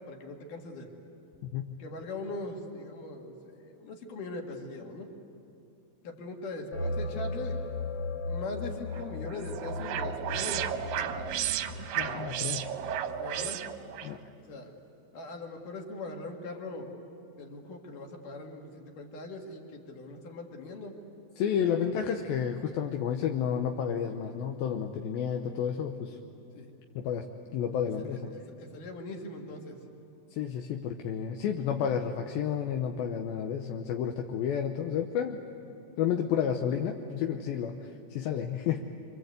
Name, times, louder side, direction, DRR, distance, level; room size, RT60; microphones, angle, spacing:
voice 1, 0.1-0.9 1.8-5.1 6.0-7.6 8.3-11.5 13.0-13.7 14.4-14.7 15.1-16.9 17.4-21.0 22.0-22.1 26.6-26.7 28.0-29.8 31.9-32.1, left 2 dB, 55° left, 1 dB, 3.6 m, -41 dB
voice 2, 1.4-1.7 12.0-12.7 14.0-14.2 21.4-26.2 27.0-28.3 30.3-35.4 36.0-38.9, left 8 dB, 75° left, 3 dB, 2.6 m, -31 dB
sound 1, 6.7-13.2, left 2 dB, 35° left, 1.7 m, -37 dB
sound 2, 8.9-14.1, right 10 dB, 75° right, 2.2 m, -34 dB
27.0 x 26.0 x 8.1 m, 2.6 s
omnidirectional pair, 4.7 m